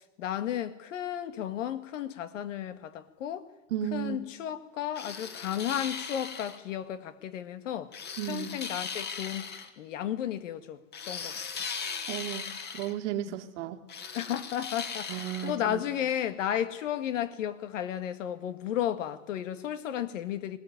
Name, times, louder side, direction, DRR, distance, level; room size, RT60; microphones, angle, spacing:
voice 1, 0.0-3.5 3.9-7.9 8.3-9.5 9.8-10.8 11.1-11.4 13.3-13.4 14.1-20.6, left 10 dB, 85° left, 2.0 m, -33 dB
voice 2, 3.7-4.3 8.2-8.6 12.1-12.5 12.7-13.8 15.1-15.8, right 11 dB, 70° right, 2.3 m, -34 dB
sound 1, 5.0-6.6 7.9-9.7 10.9-12.9 13.9-15.6, left 6 dB, 25° left, 2.0 m, -38 dB
21.5 x 18.0 x 9.4 m
supercardioid pair, 130°, 37 cm